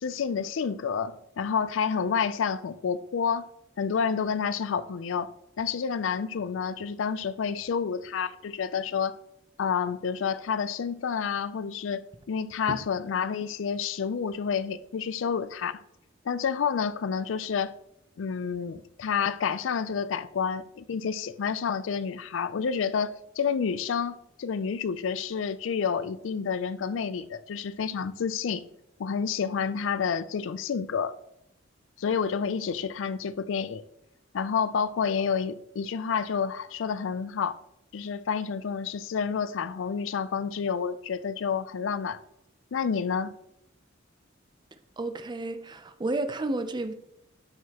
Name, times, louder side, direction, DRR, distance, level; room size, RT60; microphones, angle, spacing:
voice 1, 0.0-3.5 3.8-5.3 5.6-9.2 9.6-15.7 16.3-17.7 18.2-28.7 29.0-31.1 32.0-33.8 34.3-37.6 37.9-42.2 42.7-43.3, left 6 dB, 75° left, 0.4 m, -29 dB
voice 2, 45.0-46.9, right 2 dB, 25° right, 0.5 m, -31 dB
12.0 x 4.7 x 2.9 m
head